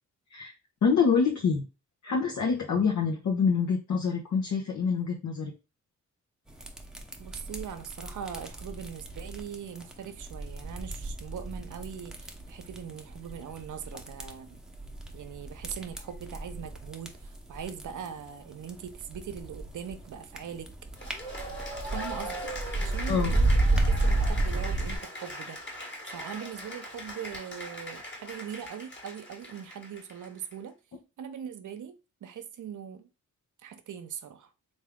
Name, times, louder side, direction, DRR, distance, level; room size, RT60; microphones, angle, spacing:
voice 1, 0.8-1.6 2.0-5.5 23.1-23.3, left 5 dB, 60° left, 0.9 m, -26 dB
sound 1, 6.5-25.0, right 2 dB, ahead, 0.8 m, -32 dB
voice 2, 7.2-14.6 15.1-20.7 21.0-21.5 21.9-25.6 26.1-30.7 31.2-31.9 32.2-33.1 33.6-34.5, right 8 dB, 65° right, 0.7 m, -41 dB
Cheering / Applause, 21.0-30.5, equal, 35° left, 1.5 m, -40 dB
3.5 x 2.6 x 3.5 m
cardioid pair, 65°, 33 cm